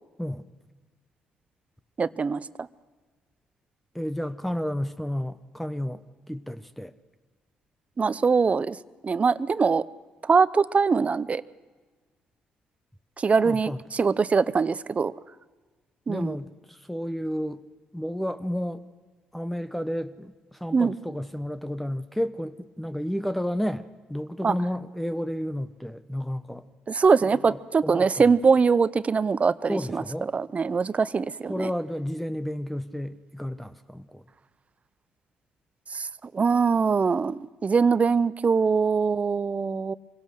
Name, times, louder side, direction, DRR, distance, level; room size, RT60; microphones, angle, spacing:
voice 1, 2.0-2.4 8.0-8.8 9.0-9.8 10.2-11.4 13.2-15.1 16.1-16.4 20.7-21.0 24.4-24.5 26.9-30.0 30.3-31.7 35.9-36.1 36.3-39.9, right 5 dB, 40° right, 17 dB, 0.7 m, -22 dB
voice 2, 3.9-6.9 13.4-13.8 16.1-17.6 17.9-18.8 19.3-26.6 27.5-28.1 29.7-30.3 31.5-34.2, equal, 5° left, 11 dB, 1.0 m, -31 dB
24.5 x 17.0 x 6.4 m, 1.4 s
supercardioid pair, 55°, 4 cm